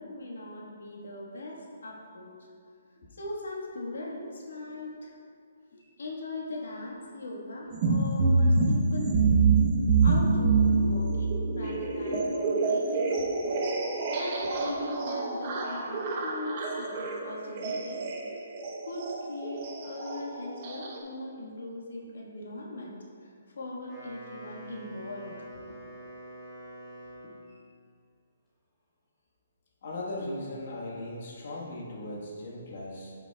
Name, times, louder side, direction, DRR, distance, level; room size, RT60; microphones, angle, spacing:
voice 1, 0.0-2.3 3.1-5.1 6.0-9.2 10.0-13.1 13.4-13.6 14.1-18.0 18.8-23.0 23.2-23.3 23.6-25.3, left 2 dB, 85° left, -3 dB, 1.4 m, -40 dB
sound 1, 7.7-21.0, right 4 dB, 35° right, 0.8 m, -27 dB
voice 2, 10.2-10.7 11.6-12.2 12.8-13.3 13.9-14.5 27.5-27.6 29.8-33.1, left 1 dB, 55° left, -4 dB, 1.3 m, -40 dB
Wind instrument woodwind instrument, 23.7-27.6, right 1 dB, 10° left, 1.5 m, -45 dB
11.5 x 5.9 x 2.3 m, 2.3 s
hypercardioid pair, 165°, 0 cm